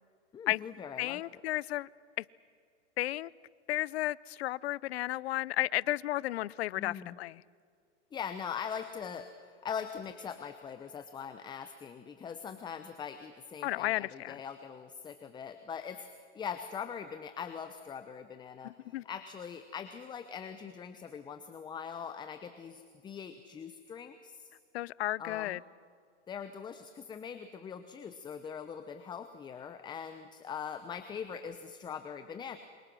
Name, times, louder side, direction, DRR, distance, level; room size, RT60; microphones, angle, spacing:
voice 1, 0.3-1.4 6.8-7.2 8.1-24.5 25.2-25.6 26.3-32.6, left 7 dB, 10° left, 9 dB, 0.8 m, -42 dB
voice 2, 1.0-1.9 2.2-2.3 3.0-3.3 3.7-7.4 13.6-14.4 18.6-19.0 24.7-25.6, left 16 dB, 60° left, 23 dB, 0.7 m, -33 dB
28.5 x 26.0 x 6.3 m, 2.2 s
hypercardioid pair, 140°, 36 cm